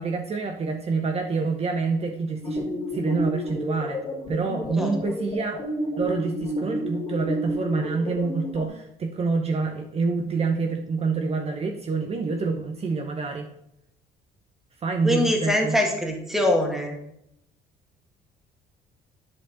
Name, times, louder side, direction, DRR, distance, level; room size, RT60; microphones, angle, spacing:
voice 1, 0.0-2.6 2.9-5.6 6.0-13.5 14.8-15.8, right 4 dB, 35° right, 3 dB, 0.8 m, -27 dB
sound 1, 2.4-8.7, left 1 dB, 35° left, 2.4 m, -31 dB
voice 2, 15.0-17.0, left 1 dB, ahead, 2 dB, 1.7 m, -23 dB
10.5 x 4.6 x 3.9 m, 0.78 s
cardioid pair, 110°, 17 cm